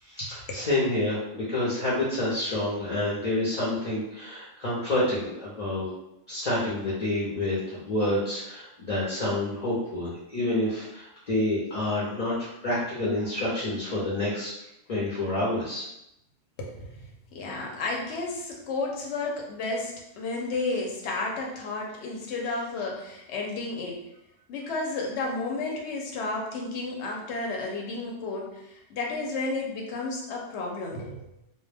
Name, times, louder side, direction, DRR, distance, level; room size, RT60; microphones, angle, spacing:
voice 1, 0.0-5.9 6.3-14.5 14.9-15.8, left 1 dB, 45° left, -7 dB, 0.6 m, -28 dB
voice 2, 16.6-24.0 24.5-31.3, left 3 dB, 65° left, 0 dB, 0.9 m, -32 dB
2.2 x 2.1 x 3.2 m, 0.83 s
omnidirectional pair, 1.3 m